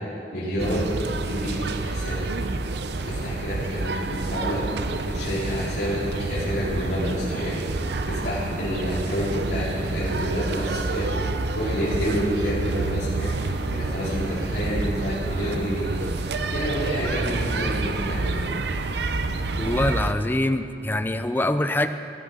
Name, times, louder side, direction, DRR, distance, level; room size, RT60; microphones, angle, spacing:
voice 1, 0.3-0.9 1.2-2.3 2.9-4.7 5.0-7.6 8.0-11.1 11.5-16.2 16.5-18.4, equal, 65° left, -10 dB, 4.2 m, -29 dB
sound 1, 0.6-20.1, right 3 dB, 70° right, 0.7 m, -28 dB
voice 2, 19.6-21.9, left 1 dB, 10° left, 10 dB, 0.5 m, -24 dB
18.0 x 10.0 x 5.4 m, 2.6 s
head